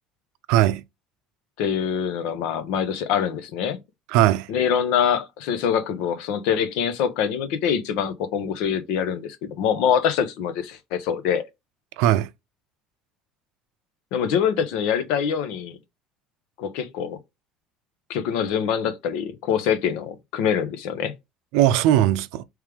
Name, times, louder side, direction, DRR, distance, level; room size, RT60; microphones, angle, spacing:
voice 1, 0.5-0.8 4.1-4.5 12.0-12.3 21.5-22.4, right 12 dB, 80° right, 0.4 m, -19 dB
voice 2, 1.6-3.8 4.5-11.4 14.1-15.8 16.6-17.2 18.1-21.1, left 8 dB, 80° left, 0.8 m, -24 dB
3.5 x 3.2 x 4.8 m
cardioid pair, 160°, 0 cm